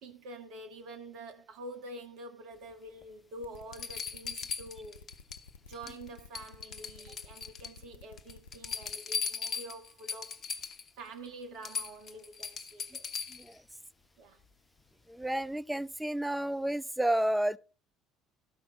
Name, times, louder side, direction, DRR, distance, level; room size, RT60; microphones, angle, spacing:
voice 1, 0.0-5.1 5.7-10.4 11.0-13.1 14.2-14.4, right 1 dB, 60° right, 1.8 m, -47 dB
sound 1, 3.0-3.1 3.7-5.4 5.7-6.1 6.3-7.8 8.2-10.9 11.3-11.4 11.6-13.5 15.2-15.3, left 6 dB, 45° left, 1.1 m, -38 dB
sound 2, 3.4-8.9, left 5 dB, 80° left, 0.6 m, -52 dB
voice 2, 15.1-17.6, right 1 dB, 5° right, 0.6 m, -31 dB
13.5 x 5.9 x 5.2 m
hypercardioid pair, 60°, 0 cm